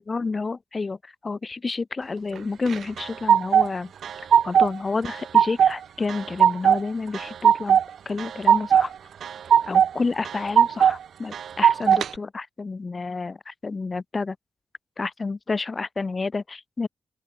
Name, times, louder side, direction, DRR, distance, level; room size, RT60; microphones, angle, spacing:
voice 1, 0.0-3.9 4.4-7.8 8.0-8.9 9.7-14.4 15.0-16.9, left 4 dB, 40° left, 4.6 m, -30 dB
sound 1, 2.7-3.7 4.0-4.7 5.0-5.7 6.1-6.8 7.1-7.8 8.2-8.9 9.2-9.9 10.2-10.9 11.3-12.1, right 8 dB, 80° right, 0.5 m, -18 dB
open air
cardioid pair, 75°, 0 cm